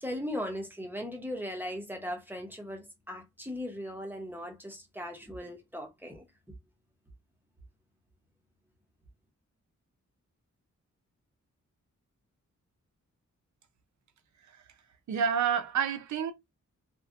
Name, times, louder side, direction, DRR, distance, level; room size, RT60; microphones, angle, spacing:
voice 1, 0.0-6.2, equal, 5° right, 0.5 m, -38 dB
voice 2, 15.1-16.3, right 7 dB, 70° right, 0.5 m, -28 dB
2.7 x 2.0 x 2.4 m
wide cardioid pair, 160°, 30 cm